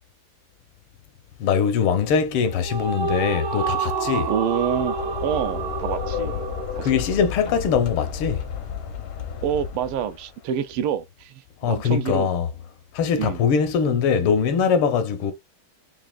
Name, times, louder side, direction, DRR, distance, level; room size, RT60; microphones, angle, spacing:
voice 1, 1.4-4.3 6.8-8.5 11.6-12.5 12.9-15.3, left 7 dB, 80° left, 1.6 m, -22 dB
sound 1, 2.3-7.8, right 5 dB, 70° right, 0.7 m, -29 dB
voice 2, 4.3-6.5 6.7-7.0 7.4-7.5 9.4-12.3 13.2-13.4, right 9 dB, 85° right, 1.5 m, -27 dB
sound 2, 4.4-10.3, left 7 dB, 65° left, 0.9 m, -32 dB
5.7 x 2.4 x 2.3 m
omnidirectional pair, 2.4 m